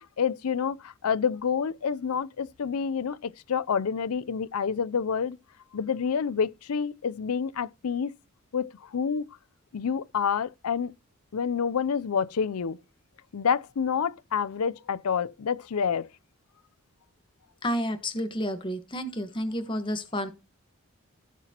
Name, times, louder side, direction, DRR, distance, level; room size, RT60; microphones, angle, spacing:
voice 1, 0.2-5.4 5.7-8.1 8.5-9.3 9.7-10.9 11.3-12.8 13.3-16.1, left 6 dB, 85° left, 0.5 m, -28 dB
voice 2, 17.6-20.3, equal, 20° left, 1.2 m, -30 dB
17.0 x 5.9 x 2.9 m
head